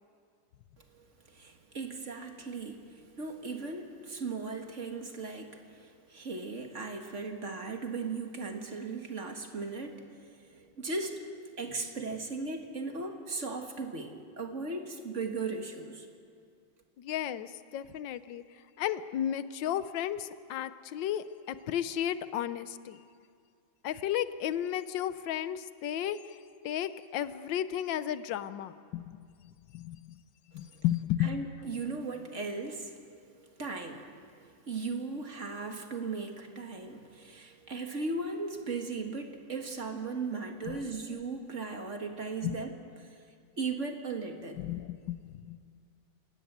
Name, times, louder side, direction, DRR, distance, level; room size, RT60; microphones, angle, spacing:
voice 1, 0.8-11.2 11.6-16.1 31.2-33.0 33.4-34.1 34.4-42.7 43.0-43.1 43.6-44.6, right 4 dB, 40° right, 4 dB, 2.0 m, -37 dB
voice 2, 17.0-18.4 18.8-23.0 23.8-26.4 26.6-29.2 29.7-30.2 30.5-31.4 40.7-40.8 42.4-42.6 44.6-45.6, left 11 dB, 80° left, 14 dB, 1.5 m, -33 dB
27.0 x 18.0 x 8.1 m, 2.2 s
omnidirectional pair, 2.0 m